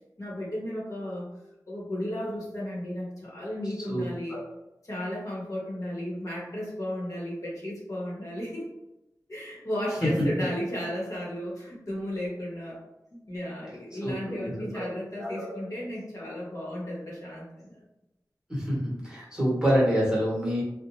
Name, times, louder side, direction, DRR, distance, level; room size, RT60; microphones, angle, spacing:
voice 1, 0.2-1.2 1.7-4.4 4.8-8.7 9.3-12.8 13.1-17.8, equal, 55° left, -6 dB, 1.0 m, -34 dB
voice 2, 14.0-14.9 15.2-15.5 18.5-20.6, equal, 10° right, -7 dB, 1.1 m, -27 dB
2.5 x 2.1 x 2.9 m, 0.93 s
wide cardioid pair, 75°, 7 cm